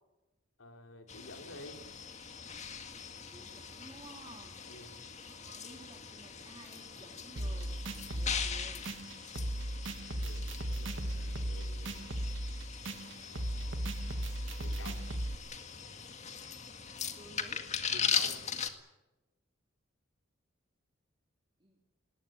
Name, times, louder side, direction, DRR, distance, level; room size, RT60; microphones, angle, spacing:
voice 1, 0.6-1.8 4.7-4.9 10.1-12.2 13.2-13.7 14.6-15.0 17.9-18.4, left 1 dB, 75° left, 5 dB, 3.9 m, -51 dB
sound 1, 1.1-18.7, left 6 dB, 35° left, 2.0 m, -40 dB
voice 2, 3.3-4.6 5.3-7.9 8.1-8.9 17.1-17.7 21.6-21.8, right 1 dB, 25° right, 1 dB, 3.0 m, -54 dB
sound 2, 7.4-15.3, right 1 dB, 65° right, 1.8 m, -37 dB
21.0 x 19.5 x 9.3 m, 1.0 s
head